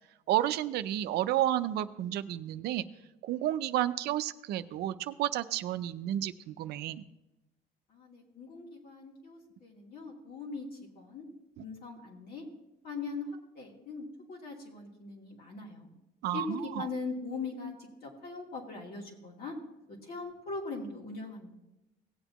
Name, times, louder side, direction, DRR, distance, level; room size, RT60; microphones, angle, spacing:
voice 1, 0.3-2.9 3.2-7.0 11.6-11.7 16.2-16.9, right 13 dB, 75° right, 12 dB, 0.5 m, -31 dB
voice 2, 7.9-10.7 10.9-11.3 11.6-12.5 12.8-13.3 13.5-15.9 16.3-17.7 18.0-19.5 20.0-21.5, left 4 dB, 60° left, -1 dB, 2.7 m, -40 dB
17.5 x 8.0 x 3.0 m, 0.96 s
cardioid pair, 110°, 17 cm